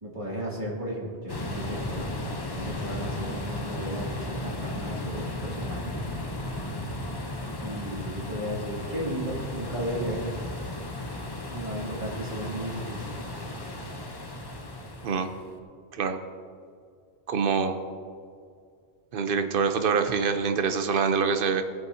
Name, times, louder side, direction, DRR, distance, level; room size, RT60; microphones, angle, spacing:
voice 1, 0.0-6.0 7.6-10.3 11.5-13.3, equal, 30° right, -4 dB, 2.2 m, -35 dB
sound 1, 1.3-15.5, left 1 dB, 25° left, 0.8 m, -35 dB
voice 2, 17.3-17.8 19.1-21.6, right 5 dB, 60° right, 8 dB, 0.9 m, -25 dB
17.5 x 7.6 x 2.7 m, 2.2 s
omnidirectional pair, 1.1 m